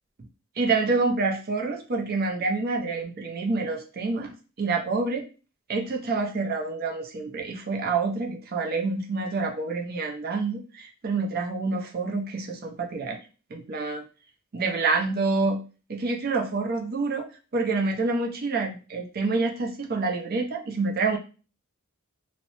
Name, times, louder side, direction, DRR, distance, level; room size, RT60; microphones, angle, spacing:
voice 1, 0.6-4.3 4.6-5.2 5.7-13.2 13.5-14.0 14.5-15.6 15.9-17.3 17.5-21.2, right 3 dB, 45° right, 1 dB, 0.4 m, -27 dB
2.8 x 2.0 x 2.7 m, 0.35 s
head